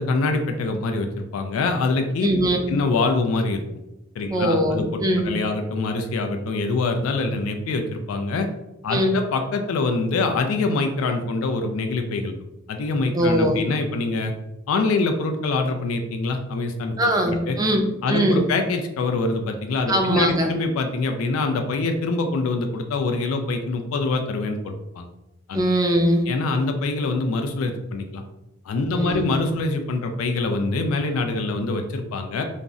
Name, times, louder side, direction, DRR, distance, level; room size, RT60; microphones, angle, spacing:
voice 1, 0.0-2.3 2.7-3.6 4.2-8.5 8.8-12.3 12.7-14.3 14.7-16.9 17.3-17.6 18.0-25.1 25.5-25.6 26.3-28.2 28.7-32.4, left 3 dB, 90° left, 5 dB, 0.3 m, -24 dB
voice 2, 2.2-2.6 4.3-5.3 8.9-9.1 13.1-13.6 17.0-18.5 19.9-20.5 25.5-26.3 28.9-29.2, right 1 dB, 20° right, 2 dB, 0.3 m, -21 dB
2.5 x 2.0 x 3.5 m, 0.93 s
head